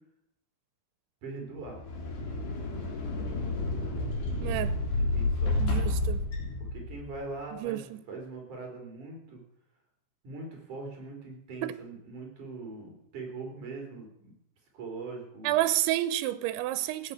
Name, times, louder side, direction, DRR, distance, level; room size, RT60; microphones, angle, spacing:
voice 1, 1.2-1.8 4.3-4.5 5.1-5.7 6.6-9.4 10.2-14.3 14.7-15.6, right 3 dB, 45° right, 4.5 m, -41 dB
sound 1, 1.6-7.2, left 2 dB, 65° left, 5.0 m, -30 dB
voice 2, 4.4-4.8 5.6-6.2 7.5-8.0 11.6-11.7 15.4-17.1, right 14 dB, 90° right, 3.1 m, -30 dB
15.5 x 8.0 x 8.1 m
omnidirectional pair, 5.2 m